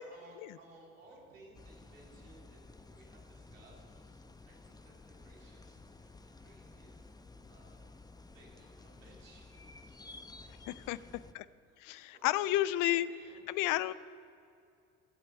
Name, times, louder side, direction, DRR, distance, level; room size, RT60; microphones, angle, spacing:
voice 1, 0.0-7.0 7.5-7.8 8.2-11.3 11.7-13.4 13.8-13.9, right 2 dB, 75° right, -2 dB, 2.9 m, -61 dB
sound 1, 1.5-11.3, left 3 dB, 10° left, 0.8 m, -54 dB
voice 2, 10.7-11.0 11.3-11.4 11.8-13.1 13.5-13.9, left 15 dB, 50° left, 17 dB, 0.6 m, -31 dB
13.0 x 7.6 x 8.9 m, 2.5 s
figure-of-eight pair, 50°, 40 cm